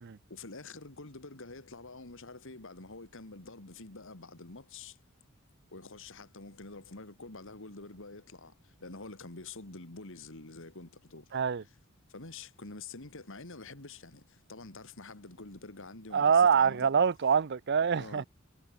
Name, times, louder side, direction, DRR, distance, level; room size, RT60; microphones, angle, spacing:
voice 1, 0.3-5.0 5.7-8.5 8.8-11.3 12.1-16.9 17.9-18.3, left 3 dB, 65° left, 2.6 m, -47 dB
voice 2, 11.3-11.6 16.1-18.2, right 6 dB, 55° right, 0.6 m, -25 dB
head